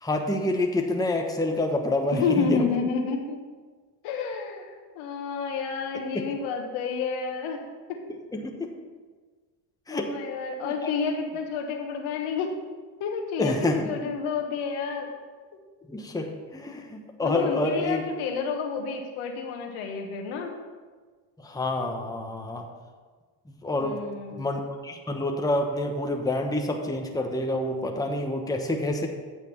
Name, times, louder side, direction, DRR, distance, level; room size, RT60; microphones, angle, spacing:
voice 1, 0.0-2.6 6.1-6.2 8.3-8.7 9.9-10.1 10.6-10.9 13.4-13.9 15.9-18.0 21.4-22.7 23.6-24.0 24.4-29.1, left 2 dB, 5° left, 2 dB, 1.1 m, -28 dB
voice 2, 2.1-3.4 4.0-8.0 9.9-12.6 13.0-15.1 17.2-20.5 23.8-24.4, left 5 dB, 80° left, 3 dB, 1.4 m, -30 dB
9.0 x 6.1 x 5.9 m, 1.4 s
supercardioid pair, 80°, 49 cm